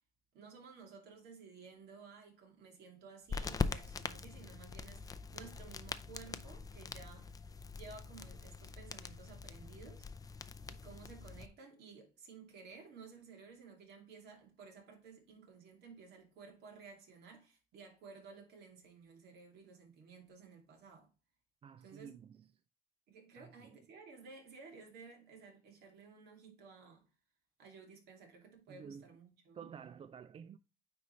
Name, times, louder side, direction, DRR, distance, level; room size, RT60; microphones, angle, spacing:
voice 1, 0.3-7.4 7.7-10.1 10.7-21.1 21.8-22.2 23.1-27.1 27.6-29.7, right 5 dB, 75° right, 2.6 m, -55 dB
sound 1, 3.3-11.5, left 4 dB, 20° left, 0.5 m, -43 dB
voice 2, 21.6-22.5 23.4-23.8 28.7-29.1 29.5-30.6, right 7 dB, 35° right, 0.3 m, -51 dB
9.4 x 4.0 x 3.2 m
cardioid pair, 110°, 17 cm